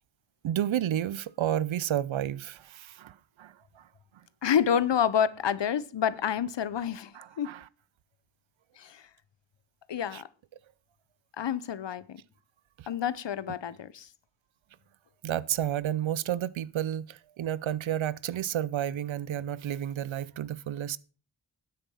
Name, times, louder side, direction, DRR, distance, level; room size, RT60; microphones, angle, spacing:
voice 1, 0.4-3.8 7.1-7.6 10.1-10.2 12.8-12.9 15.2-21.0, right 11 dB, 85° right, 0.5 m, -31 dB
voice 2, 4.4-7.5 8.8-9.0 9.9-10.3 11.4-12.2 12.9-14.1, left 8 dB, 70° left, 0.7 m, -28 dB
9.4 x 8.3 x 5.5 m
cardioid pair, 45°, 45 cm